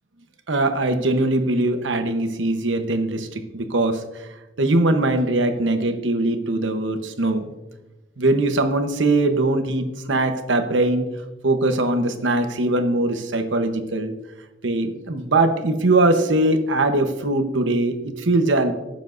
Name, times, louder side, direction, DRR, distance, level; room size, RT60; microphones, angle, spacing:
voice 1, 0.5-4.3 4.6-7.5 8.2-11.1 11.4-14.1 14.6-18.7, right 2 dB, 90° right, 7 dB, 1.0 m, -21 dB
16.5 x 7.2 x 2.6 m, 1.1 s
head